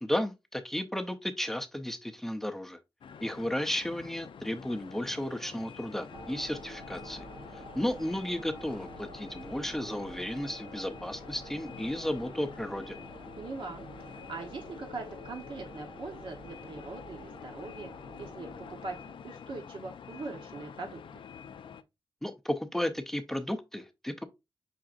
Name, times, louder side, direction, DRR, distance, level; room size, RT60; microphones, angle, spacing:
voice 1, 0.0-2.8 3.2-7.3 7.8-13.0 22.2-24.2, left 1 dB, 5° left, 0.5 m, -33 dB
sound 1, 3.0-21.8, left 7 dB, 70° left, 0.4 m, -48 dB
sound 2, 6.1-19.2, right 1 dB, 85° right, 1.9 m, -48 dB
voice 2, 13.3-17.9 18.2-19.0 19.2-21.0, right 3 dB, 70° right, 0.9 m, -41 dB
5.8 x 3.7 x 2.4 m
wide cardioid pair, 170°, 9 cm